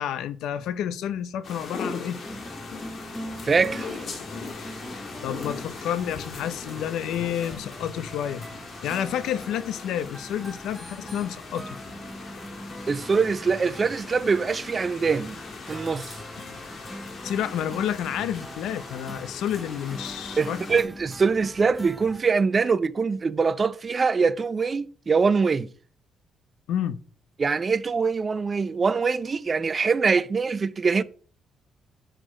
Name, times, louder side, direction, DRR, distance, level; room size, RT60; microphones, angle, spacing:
voice 1, 0.0-2.2 5.2-8.5 8.8-11.8 16.4-16.6 17.2-20.8 26.7-27.0, left 10 dB, 85° left, 0.6 m, -30 dB
sound 1, 1.4-20.8, left 4 dB, 50° left, 1.9 m, -40 dB
sound 2, 2.2-22.2, equal, ahead, 0.8 m, -42 dB
voice 2, 3.4-4.0 12.9-15.4 15.7-16.2 20.4-25.7 27.4-31.0, right 5 dB, 35° right, 0.5 m, -23 dB
6.7 x 5.9 x 5.0 m
cardioid pair, 110°, 0 cm